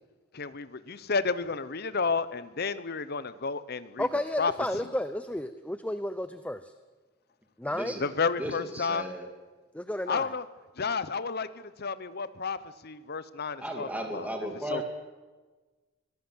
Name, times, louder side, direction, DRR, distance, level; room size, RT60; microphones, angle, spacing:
voice 1, 0.3-4.1 4.4-4.5 8.0-9.0 10.1-10.4 10.8-11.5 11.8-12.6 12.8-14.3 14.7-14.8, left 4 dB, 55° left, 14 dB, 0.9 m, -31 dB
voice 2, 4.0-6.7 7.6-8.0 9.7-10.3, left 1 dB, 5° left, 11 dB, 0.7 m, -32 dB
voice 3, 7.7-8.0 8.4-9.3 13.6-14.8, right 1 dB, 10° right, 3 dB, 2.7 m, -35 dB
24.0 x 17.5 x 8.0 m, 1.3 s
head